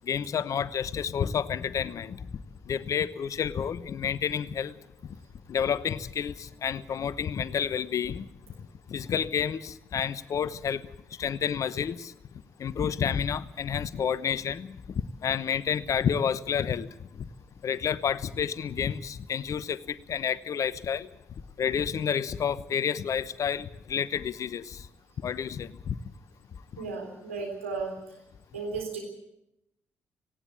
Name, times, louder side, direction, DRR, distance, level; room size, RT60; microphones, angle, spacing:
voice 1, 0.1-2.2 2.7-4.7 5.5-8.3 8.9-10.8 11.2-12.1 12.6-14.8 15.2-16.9 17.6-21.1 21.6-24.8 25.2-25.9, left 7 dB, 55° left, 17 dB, 0.9 m, -29 dB
voice 2, 26.8-28.2 28.5-29.0, right 4 dB, 90° right, 1 dB, 3.8 m, -35 dB
18.0 x 17.5 x 8.7 m, 0.85 s
hypercardioid pair, 40°, 7 cm